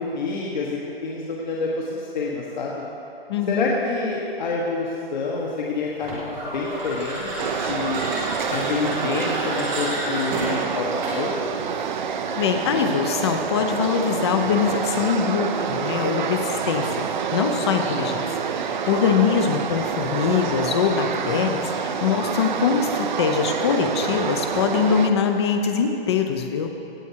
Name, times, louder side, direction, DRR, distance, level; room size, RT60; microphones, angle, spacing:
voice 1, 0.0-2.8 3.5-8.1 8.5-11.3, left 4 dB, 45° left, -3 dB, 1.4 m, -28 dB
voice 2, 3.3-3.7 12.3-17.0 17.3-26.7, left 7 dB, 25° left, 6 dB, 0.7 m, -23 dB
sound 1, 6.0-11.4, right 1 dB, 5° right, 0.4 m, -31 dB
sound 2, 7.4-25.1, right 6 dB, 50° right, 0.7 m, -27 dB
16.0 x 8.1 x 4.6 m, 2.9 s
hypercardioid pair, 165°, 30 cm